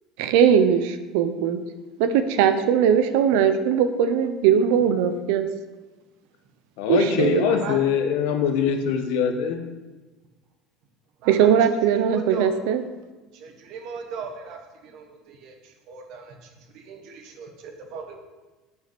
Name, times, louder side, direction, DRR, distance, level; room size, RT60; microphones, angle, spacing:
voice 1, 0.2-1.6 2.0-5.5 6.9-7.5 11.3-12.8, right 8 dB, 80° right, 10 dB, 0.7 m, -20 dB
voice 2, 6.8-9.7, left 7 dB, 75° left, 6 dB, 1.1 m, -23 dB
voice 3, 7.4-7.8 11.2-11.8 12.1-12.6 13.3-18.2, right 5 dB, 60° right, 4 dB, 1.6 m, -38 dB
8.1 x 5.6 x 6.0 m, 1.2 s
cardioid pair, 150°, 0 cm